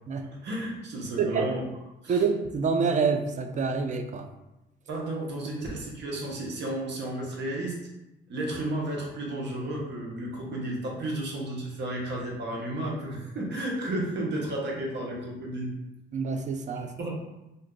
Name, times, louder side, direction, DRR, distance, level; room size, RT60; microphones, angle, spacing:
voice 1, 0.4-1.6 2.0-2.2 4.9-7.8 8.3-15.7 17.0-17.2, right 1 dB, 60° right, -2 dB, 0.9 m, -32 dB
voice 2, 2.1-4.3 16.1-16.9, right 5 dB, 40° right, 6 dB, 0.4 m, -27 dB
2.6 x 2.2 x 3.7 m, 0.95 s
cardioid pair, 90°, 20 cm